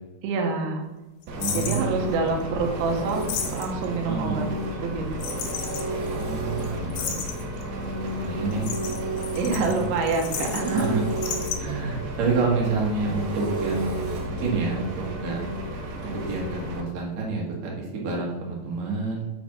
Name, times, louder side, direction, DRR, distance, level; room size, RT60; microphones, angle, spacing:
voice 1, 0.2-0.8 1.5-4.5 4.8-5.6 9.4-11.0, right 4 dB, 90° right, 2 dB, 3.2 m, -27 dB
voice 2, 1.3-2.1 4.1-4.4 6.1-7.2 8.2-8.7 9.5-9.8 10.7-11.0 11.6-15.4 16.0-19.3, right 4 dB, 55° right, -3 dB, 2.2 m, -28 dB
Engine, 1.3-16.8, right 1 dB, 75° right, 2.6 m, -32 dB
sound 1, 1.4-1.9 3.1-3.9 5.2-5.9 6.2-6.3 6.6-6.7 6.9-7.6 8.5-10.9 11.1-11.6, left 7 dB, 90° left, 3.3 m, -33 dB
6.4 x 5.9 x 4.0 m, 1.1 s
omnidirectional pair, 5.1 m